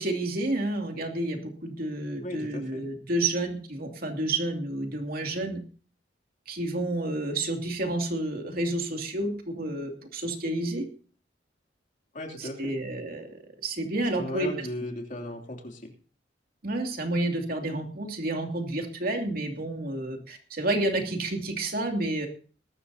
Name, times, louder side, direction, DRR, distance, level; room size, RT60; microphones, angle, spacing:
voice 1, 0.0-5.6 6.5-10.8 12.4-14.5 16.6-22.3, right 2 dB, 55° right, 3 dB, 2.6 m, -30 dB
voice 2, 2.2-2.8 12.1-12.7 14.1-15.9, left 1 dB, 45° left, 2 dB, 2.9 m, -36 dB
21.5 x 12.5 x 2.8 m, 0.38 s
head